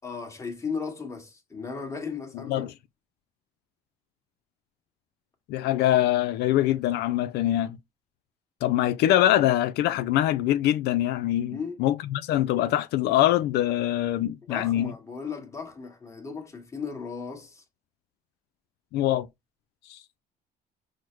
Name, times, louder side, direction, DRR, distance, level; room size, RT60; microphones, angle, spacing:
voice 1, 0.0-2.7 11.5-11.8 14.5-17.6, left 5 dB, 15° left, 1.3 m, -36 dB
voice 2, 5.5-7.8 8.6-14.9 18.9-19.3 19.9-20.0, left 13 dB, 75° left, 0.4 m, -24 dB
6.2 x 2.1 x 3.1 m
cardioid pair, 110°, 17 cm